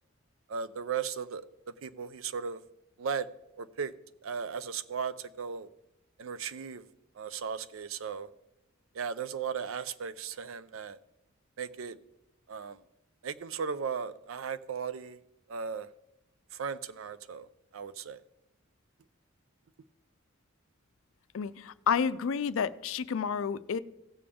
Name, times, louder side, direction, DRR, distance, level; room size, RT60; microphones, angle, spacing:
voice 1, 0.5-2.6 3.0-3.3 3.6-3.9 4.2-5.7 6.2-6.9 7.2-8.3 8.9-11.0 11.6-12.0 12.5-12.8 13.2-15.2 15.5-15.9 16.5-18.2, right 6 dB, 75° right, 0.5 m, -36 dB
voice 2, 21.3-23.8, left 6 dB, 75° left, 0.4 m, -30 dB
16.5 x 6.8 x 3.6 m
head